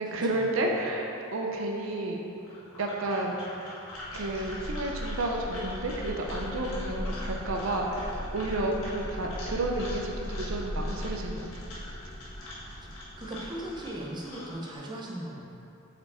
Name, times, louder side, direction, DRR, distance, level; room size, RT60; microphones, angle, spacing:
voice 1, 0.0-2.2 2.8-3.6 4.1-11.5, right 2 dB, 70° right, 1 dB, 0.6 m, -31 dB
sound 1, 2.4-14.8, left 1 dB, 80° left, 1.4 m, -44 dB
sound 2, 3.9-14.5, equal, 45° right, 1.0 m, -42 dB
sound 3, 4.6-11.6, left 1 dB, 90° right, 0.9 m, -39 dB
voice 2, 12.6-15.4, right 1 dB, 20° right, -3 dB, 0.6 m, -39 dB
5.1 x 4.4 x 4.2 m, 2.8 s
head